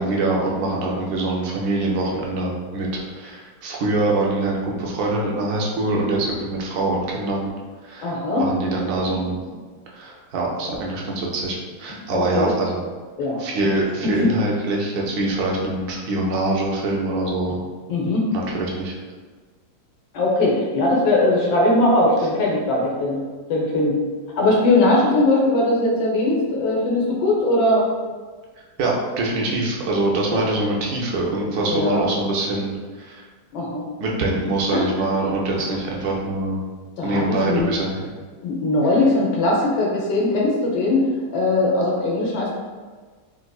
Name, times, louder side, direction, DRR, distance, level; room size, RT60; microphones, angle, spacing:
voice 1, 0.0-7.5 7.8-9.4 9.9-12.8 13.4-17.6 18.3-19.0 28.8-33.2 34.0-36.6 37.0-38.1, right 2 dB, 70° right, -2 dB, 1.1 m, -24 dB
voice 2, 8.0-8.5 12.1-12.5 13.2-13.7 14.1-14.3 17.9-18.2 20.1-23.2 23.5-24.0 24.3-27.9 30.3-30.4 31.7-32.0 33.5-33.9 34.7-34.9 37.0-37.7 38.4-41.0 41.3-42.5, left 2 dB, 85° left, -3 dB, 1.4 m, -20 dB
3.7 x 2.5 x 2.3 m, 1.4 s
omnidirectional pair, 1.8 m